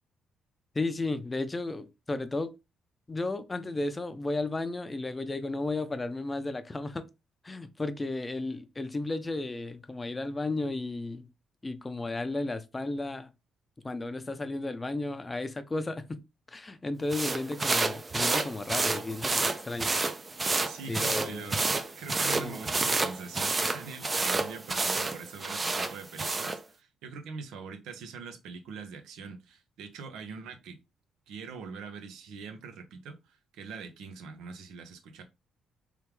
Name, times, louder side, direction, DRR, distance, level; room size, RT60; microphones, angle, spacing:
voice 1, 0.7-2.5 3.1-7.1 7.4-11.3 11.6-13.3 13.8-16.2 16.5-19.9 20.9-21.5 22.3-22.6, left 2 dB, 20° left, 0.5 m, -34 dB
sound 1, 17.1-26.6, right 3 dB, 25° right, 0.5 m, -30 dB
voice 2, 20.7-30.8 31.3-35.2, right 5 dB, 85° right, 0.8 m, -43 dB
3.5 x 3.3 x 3.1 m
cardioid pair, 90°, 0 cm